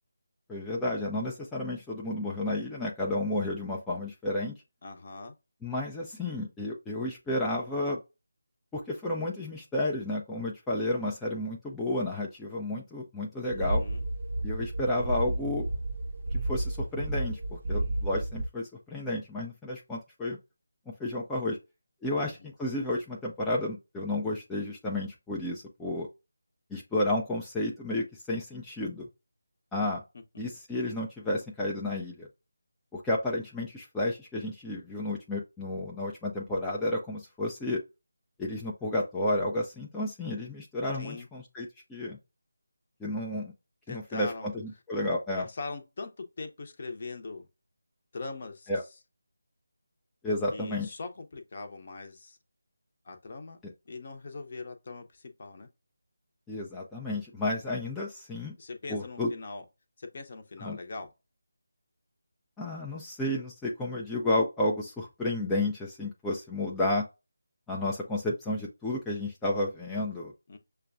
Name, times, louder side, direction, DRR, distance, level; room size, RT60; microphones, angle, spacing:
voice 1, 0.5-4.5 5.6-8.0 8.7-13.8 14.4-15.7 16.4-20.4 21.0-21.6 22.0-26.1 26.7-29.1 29.7-30.0 30.4-32.3 32.9-37.8 38.4-42.2 43.0-43.5 43.9-45.5 48.7-48.8 50.2-50.9 56.5-58.5 58.9-59.3 60.6-60.8 62.6-67.0 67.7-70.3, left 1 dB, 5° left, 0.5 m, -31 dB
voice 2, 4.8-5.3 13.6-14.1 22.1-22.5 30.1-30.2 41.0-41.3 43.9-44.5 45.3-46.1 46.4-47.5 48.1-48.9 50.5-52.4 53.0-53.6 53.9-55.7 58.6-59.6 60.0-61.1 70.5-70.6, left 3 dB, 40° left, 0.8 m, -41 dB
sound 1, 13.5-18.5, right 1 dB, 35° right, 0.6 m, -32 dB
6.5 x 2.3 x 2.4 m
figure-of-eight pair, 155°, 0 cm